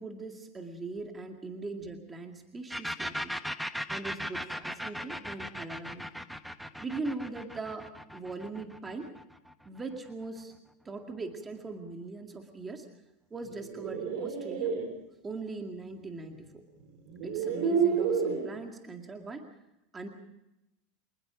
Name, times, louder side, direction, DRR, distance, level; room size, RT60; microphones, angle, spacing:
voice 1, 0.0-3.4 3.9-6.1 6.8-9.1 9.7-10.5 10.9-12.9 13.3-14.7 15.2-16.5 17.2-19.5 19.9-20.1, right 3 dB, 15° right, 3 dB, 2.2 m, -40 dB
sound 1, 2.7-10.2, equal, ahead, 1.2 m, -38 dB
sound 2, 13.5-14.8 16.3-16.4 17.1-18.5, right 6 dB, 55° right, 6.7 m, -29 dB
26.5 x 20.0 x 4.9 m, 0.89 s
supercardioid pair, 140°, 0 cm